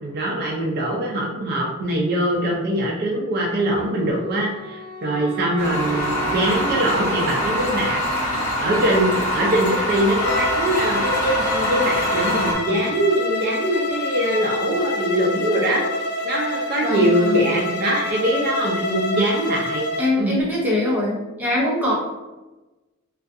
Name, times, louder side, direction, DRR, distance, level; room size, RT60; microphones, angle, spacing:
voice 1, 0.0-8.0 8.6-15.9 16.2-19.9 20.2-20.3, right 1 dB, 45° right, -2 dB, 0.4 m, -22 dB
Wind instrument woodwind instrument, 3.5-8.4, right 4 dB, 90° right, 0.6 m, -37 dB
sound 1, 5.6-12.6, equal, 35° left, 0.8 m, -24 dB
Bowed string instrument, 10.1-20.2, left 2 dB, 50° left, 0.3 m, -27 dB
voice 2, 16.8-17.5 20.0-21.9, left 1 dB, 10° right, -5 dB, 0.6 m, -22 dB
2.3 x 2.3 x 2.5 m, 1.1 s
head